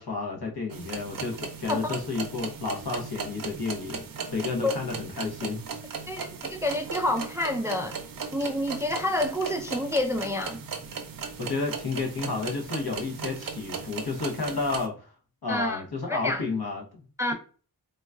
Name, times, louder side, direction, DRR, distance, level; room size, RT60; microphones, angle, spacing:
voice 1, 0.0-5.6 11.4-15.1 15.4-17.1, left 4 dB, 70° left, 1.0 m, -31 dB
sound 1, 0.7-14.9, right 5 dB, 60° right, 0.5 m, -37 dB
voice 2, 6.1-8.0 8.3-10.6 15.5-15.8 16.1-16.4 17.2-17.3, left 1 dB, 10° right, 0.3 m, -28 dB
3.9 x 2.2 x 2.4 m
wide cardioid pair, 65°, 39 cm